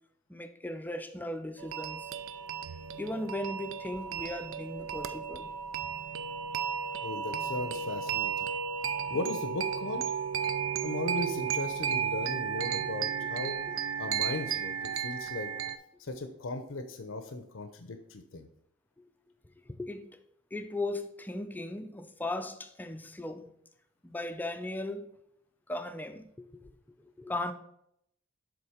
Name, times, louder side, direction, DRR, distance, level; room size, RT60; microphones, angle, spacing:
voice 1, 0.3-2.1 3.0-5.5 13.2-13.3 13.7-13.8 19.8-20.2 20.5-23.5 24.0-25.1 25.7-26.7 27.0-27.5, left 1 dB, 10° left, 0.5 m, -37 dB
sound 1, 1.6-15.8, right 7 dB, 75° right, 0.4 m, -34 dB
voice 2, 7.0-8.5 9.1-10.0 10.8-13.6 14.0-15.5 16.0-18.5, left 2 dB, 70° left, 0.7 m, -37 dB
7.1 x 3.9 x 4.9 m
head